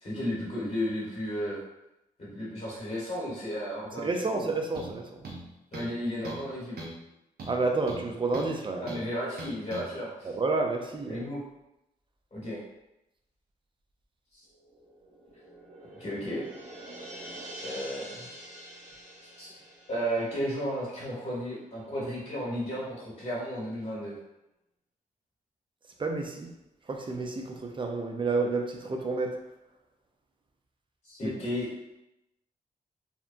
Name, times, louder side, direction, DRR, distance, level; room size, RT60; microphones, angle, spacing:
voice 1, 0.0-1.6 2.2-4.5 5.7-6.8 8.8-10.3 11.0-11.4 12.3-12.6 14.3-14.5 16.0-16.4 17.6-18.3 19.4-19.5 19.9-24.1 31.0-31.7, equal, 45° left, -7 dB, 1.1 m, -33 dB
voice 2, 4.0-5.1 7.5-8.9 10.2-11.2 26.0-26.5 26.9-29.4 31.2-31.3, right 3 dB, 30° right, 3 dB, 0.5 m, -30 dB
sound 1, 4.7-5.0 5.2-6.0 6.2-6.5 6.8-7.0 7.4-8.5 8.9-9.0 9.4-9.9, right 1 dB, 75° right, 0.6 m, -40 dB
sound 2, 14.5-21.5 21.8-21.9, right 1 dB, 45° right, 1.2 m, -46 dB
2.8 x 2.1 x 2.5 m, 0.90 s
cardioid pair, 60°, 16 cm